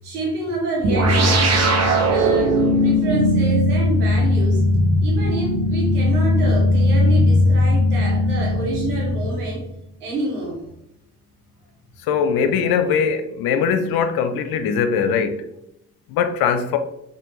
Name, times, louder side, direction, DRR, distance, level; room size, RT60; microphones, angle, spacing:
voice 1, 0.0-4.6 5.0-9.6 10.0-10.6, right 2 dB, 85° right, 1.5 m, -28 dB
sound 1, 0.8-9.7, left 1 dB, 35° right, 1.2 m, -18 dB
voice 2, 12.0-15.4 16.1-16.8, left 6 dB, 55° left, 0.7 m, -21 dB
6.0 x 2.7 x 3.1 m
figure-of-eight pair, 50°, 45 cm